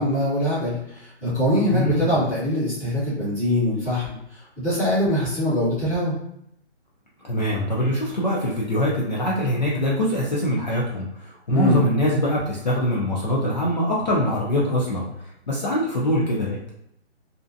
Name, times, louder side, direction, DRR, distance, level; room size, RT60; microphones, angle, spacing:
voice 1, 0.0-6.2 11.5-11.8, left 1 dB, 5° right, -14 dB, 0.7 m, -23 dB
voice 2, 1.7-2.1 7.3-15.1 15.5-16.7, left 1 dB, 40° left, -4 dB, 0.4 m, -23 dB
2.5 x 2.1 x 2.5 m, 0.76 s
hypercardioid pair, 165°, 34 cm